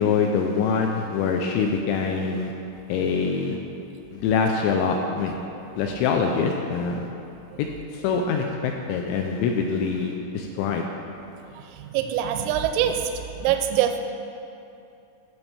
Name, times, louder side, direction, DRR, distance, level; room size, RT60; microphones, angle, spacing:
voice 1, 0.0-2.5 2.9-3.6 4.1-5.3 5.8-7.1 7.6-7.7 7.9-10.9, left 5 dB, 85° left, 2 dB, 2.6 m, -24 dB
voice 2, 11.5-14.0, right 10 dB, 85° right, 6 dB, 3.2 m, -24 dB
11.0 x 6.1 x 7.1 m, 2.7 s
omnidirectional pair, 5.8 m